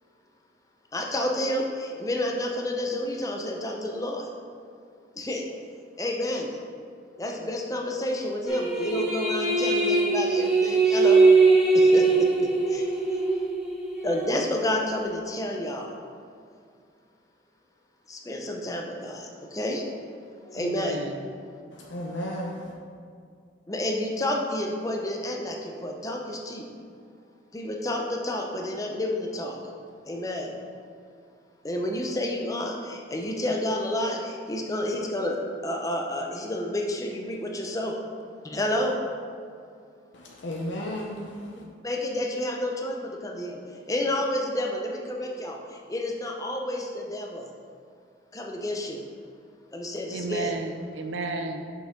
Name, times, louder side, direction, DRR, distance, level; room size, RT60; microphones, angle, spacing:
voice 1, 0.9-4.2 5.2-5.4 6.0-6.5 7.2-11.2 11.7-12.9 14.0-15.9 18.1-19.8 20.5-21.0 23.7-26.7 27.5-29.6 30.1-30.5 31.6-37.9 38.4-39.0 41.8-43.6 43.9-45.6 45.9-47.5 48.3-49.0 49.7-50.5, left 1 dB, 20° left, 1 dB, 0.6 m, -30 dB
sound 1, 8.5-14.3, right 3 dB, 5° right, 1.0 m, -21 dB
voice 2, 20.6-21.2 50.1-51.6, right 3 dB, 75° right, 6 dB, 0.5 m, -33 dB
voice 3, 21.7-22.7 40.1-41.6, equal, 70° left, -1 dB, 0.6 m, -34 dB
6.1 x 5.9 x 3.7 m, 2.3 s
head